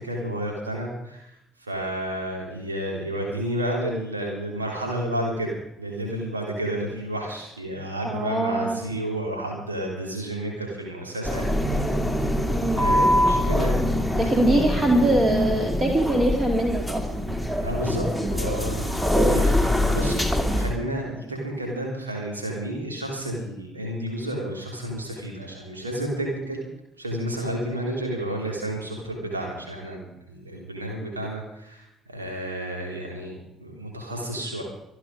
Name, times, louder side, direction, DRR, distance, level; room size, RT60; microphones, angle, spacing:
voice 1, 0.0-11.9 12.7-13.8 14.2-14.3 17.6-26.6 27.0-34.6, right 1 dB, 85° right, -1 dB, 3.7 m, -31 dB
voice 2, 8.0-8.8 12.5-13.0 14.2-17.2 18.2-18.6, right 1 dB, 25° right, 2 dB, 2.6 m, -23 dB
sound 1, 11.2-20.7, left 1 dB, 5° right, 2.7 m, -24 dB
26.0 x 9.6 x 5.2 m, 0.83 s
figure-of-eight pair, 50°, 0 cm